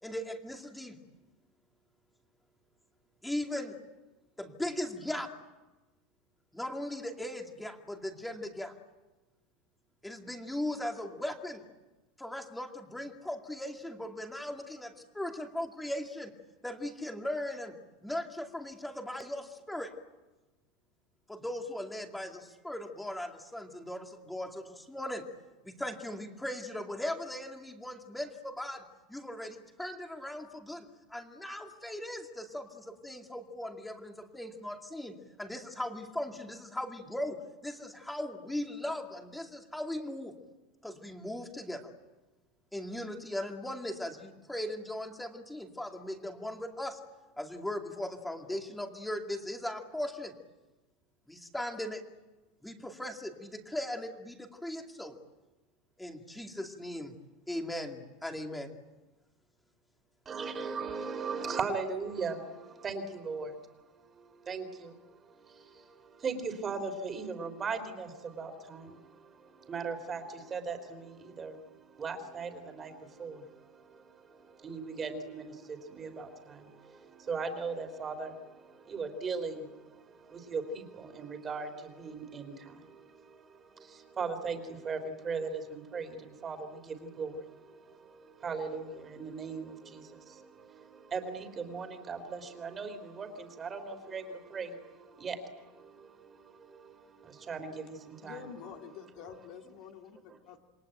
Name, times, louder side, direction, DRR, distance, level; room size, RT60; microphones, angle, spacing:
voice 1, 0.0-1.0 3.2-3.8 4.4-5.3 6.5-8.7 10.0-11.6 12.2-16.3 16.6-17.7 18.0-19.9 21.3-25.3 25.6-28.8 29.1-40.3 40.8-41.9 42.7-47.0 47.4-50.3 51.3-52.0 52.6-55.2 56.0-57.1 57.5-58.7, left 1 dB, 5° left, 3 dB, 2.4 m, -38 dB
voice 2, 60.2-98.4, right 4 dB, 20° right, 8 dB, 3.3 m, -39 dB
voice 3, 98.2-100.6, left 7 dB, 50° left, 3 dB, 2.6 m, -47 dB
27.5 x 23.0 x 9.1 m, 1.1 s
supercardioid pair, 165°, 0 cm